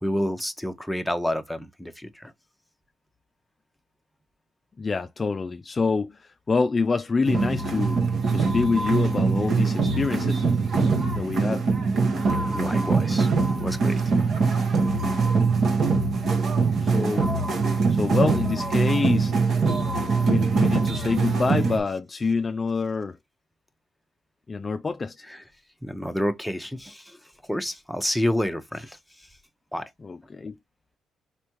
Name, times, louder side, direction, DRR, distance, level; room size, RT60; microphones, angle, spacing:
voice 1, 0.0-2.3 12.5-13.3 13.6-14.1 25.8-27.2 27.5-29.0 29.7-29.9, equal, ahead, 0.7 m, -29 dB
voice 2, 4.8-8.0 8.3-10.5 11.1-11.6 16.8-17.3 17.9-19.3 20.2-23.2 24.5-25.3 30.0-30.6, left 4 dB, 30° left, 0.3 m, -26 dB
sound 1, 7.2-21.8, right 4 dB, 60° right, 1.1 m, -23 dB
4.4 x 3.4 x 3.0 m
cardioid pair, 90°, 0 cm